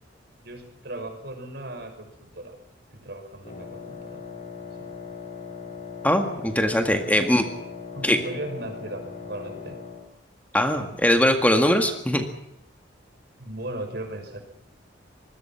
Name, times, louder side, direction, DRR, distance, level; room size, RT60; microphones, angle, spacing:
voice 1, 0.4-2.6 2.9-4.4 4.8-4.9 7.2-7.4 7.9-9.8 13.4-14.4, right 1 dB, 60° right, 5 dB, 6.0 m, -37 dB
Wind instrument woodwind instrument, 3.4-10.1, left 5 dB, 40° left, 4.9 m, -39 dB
voice 2, 6.0-7.4 8.0-8.2 10.5-12.2, left 1 dB, 10° left, 5 dB, 1.9 m, -21 dB
26.5 x 21.0 x 5.8 m, 0.80 s
head